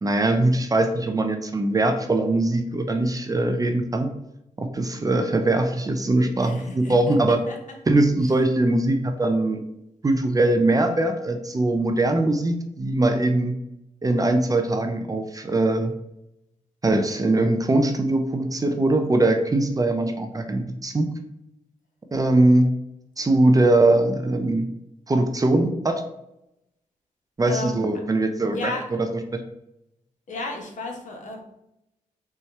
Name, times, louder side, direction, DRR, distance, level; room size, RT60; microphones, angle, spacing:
voice 1, 0.0-4.1 4.6-7.4 7.9-9.6 10.0-13.6 14.0-15.9 16.8-21.1 22.1-22.7 23.2-24.7 25.1-26.0 27.4-28.7 29.0-29.4, right 2 dB, 25° right, 6 dB, 0.5 m, -21 dB
voice 2, 6.4-7.2 7.5-7.6 27.5-27.8 28.5-28.8 30.3-31.4, left 2 dB, 65° left, 1 dB, 0.9 m, -33 dB
4.2 x 2.3 x 3.2 m, 0.84 s
cardioid pair, 60°, 14 cm